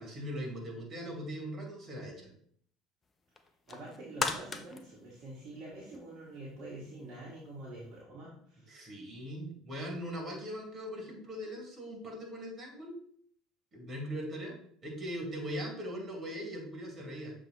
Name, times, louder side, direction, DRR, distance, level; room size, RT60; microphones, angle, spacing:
voice 1, 0.0-2.3 8.7-13.0 13.7-14.6 14.8-17.3, equal, 35° right, 0 dB, 2.3 m, -40 dB
sound 1, 3.4-6.1 6.5-6.6, left 4 dB, 25° left, 0.7 m, -38 dB
voice 2, 3.7-8.8, right 1 dB, 50° right, -5 dB, 1.5 m, -46 dB
6.7 x 3.6 x 4.1 m, 0.63 s
figure-of-eight pair, 65°, 0 cm